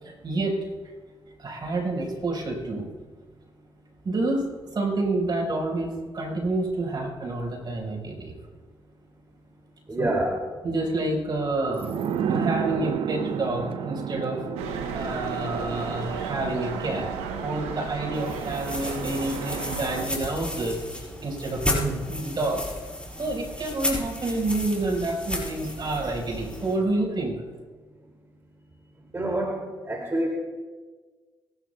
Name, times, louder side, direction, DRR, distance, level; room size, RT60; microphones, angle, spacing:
voice 1, 0.0-0.7 1.4-2.9 4.0-8.3 10.0-10.1 10.6-11.9 12.3-14.4 14.9-17.1 17.4-22.6 23.2-27.4, right 2 dB, 50° right, 0 dB, 4.6 m, -28 dB
voice 2, 9.9-10.4 29.1-29.6 29.9-30.3, right 1 dB, 30° right, 0 dB, 2.5 m, -26 dB
sound 1, 11.8-21.1 21.4-21.5, right 8 dB, 65° right, 0.7 m, -33 dB
sound 2, 14.6-20.1, right 5 dB, 90° right, 1.2 m, -34 dB
Tying rope, 18.1-26.7, left 1 dB, 10° left, 4.8 m, -34 dB
23.5 x 12.0 x 2.3 m, 1.4 s
supercardioid pair, 50°, 10 cm